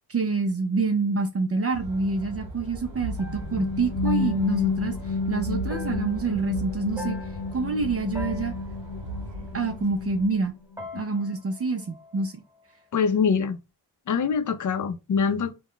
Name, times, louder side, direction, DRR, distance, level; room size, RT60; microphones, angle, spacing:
voice 1, 0.1-7.2 7.5-8.5 9.5-10.5 10.9-12.4, right 3 dB, 35° right, 0.5 m, -27 dB
sound 1, 1.6-10.5 10.8-12.8, left 2 dB, 5° right, 1.0 m, -45 dB
sound 2, 1.7-10.3, right 1 dB, 55° right, 1.1 m, -37 dB
sound 3, 3.0-10.8, left 3 dB, 85° left, 0.6 m, -32 dB
voice 2, 12.9-13.6 14.1-15.5, left 6 dB, 45° left, 0.5 m, -24 dB
2.4 x 2.1 x 3.6 m
cardioid pair, 75°, 42 cm